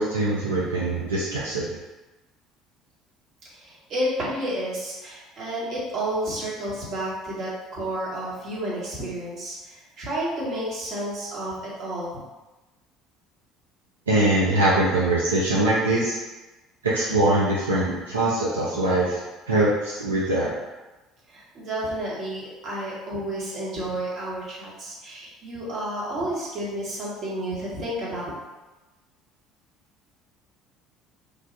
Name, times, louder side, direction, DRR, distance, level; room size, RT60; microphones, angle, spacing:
voice 1, 0.0-1.8 14.1-16.2 16.8-19.2 19.5-20.5, right 1 dB, 85° right, -7 dB, 0.4 m, -22 dB
voice 2, 3.5-12.2 21.3-28.3, right 1 dB, 50° right, -6 dB, 1.1 m, -31 dB
3.1 x 2.2 x 2.6 m, 1.1 s
figure-of-eight pair, 60°, 0 cm